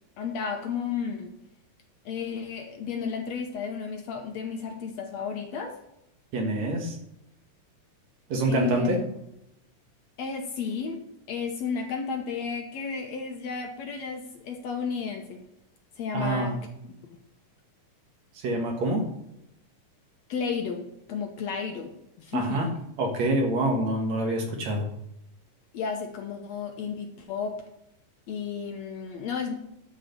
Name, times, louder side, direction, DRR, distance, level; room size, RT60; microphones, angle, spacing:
voice 1, 0.2-1.3 2.1-5.8 8.5-9.0 10.2-15.4 16.0-16.6 17.0-17.2 20.3-22.7 25.7-27.6 28.3-29.5, left 6 dB, 65° left, 3 dB, 2.0 m, -33 dB
voice 2, 6.3-7.0 8.3-9.0 16.1-16.6 18.3-19.0 22.3-22.7 23.0-24.9, right 1 dB, 60° right, 2 dB, 2.8 m, -26 dB
11.5 x 5.0 x 6.7 m, 0.82 s
omnidirectional pair, 3.8 m